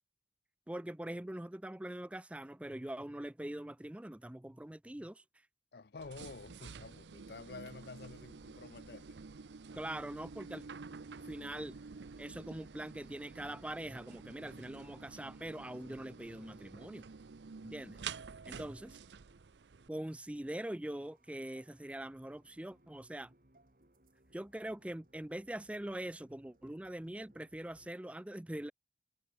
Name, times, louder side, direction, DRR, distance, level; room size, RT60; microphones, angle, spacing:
voice 1, 0.7-5.2 9.7-10.6 11.3-11.8 12.2-17.0 17.6-18.0 18.4-19.0 19.9-23.3 24.3-28.7, right 1 dB, 5° right, 0.4 m, -43 dB
voice 2, 5.7-9.2, left 4 dB, 65° left, 0.6 m, -50 dB
sound 1, 6.0-19.9, right 5 dB, 85° right, 0.6 m, -50 dB
sound 2, 19.7-27.9, right 1 dB, 50° right, 2.7 m, -70 dB
head